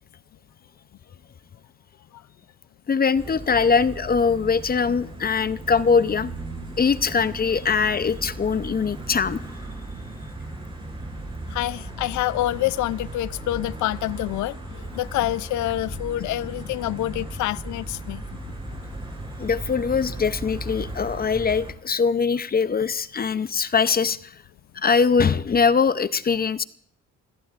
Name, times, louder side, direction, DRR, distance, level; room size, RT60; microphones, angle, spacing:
voice 1, 2.9-6.3 6.8-9.4 19.4-24.3 24.8-26.6, left 5 dB, 30° left, 0.6 m, -22 dB
sound 1, 3.1-21.7, right 2 dB, 15° right, 6.4 m, -36 dB
voice 2, 11.5-18.2, left 15 dB, 75° left, 0.5 m, -27 dB
28.0 x 16.5 x 2.5 m
cardioid pair, 90°, 30 cm